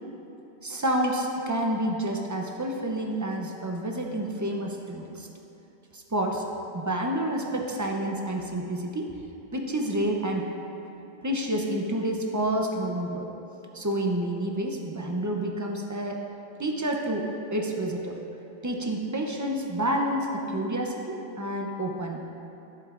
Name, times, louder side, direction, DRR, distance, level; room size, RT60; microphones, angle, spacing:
voice 1, 0.6-5.3 5.9-6.5 6.7-9.2 9.5-10.5 11.2-13.3 13.7-16.2 16.6-18.2 18.6-22.2, right 1 dB, 25° right, 1 dB, 0.4 m, -29 dB
14.0 x 7.7 x 2.5 m, 3.0 s
omnidirectional pair, 1.3 m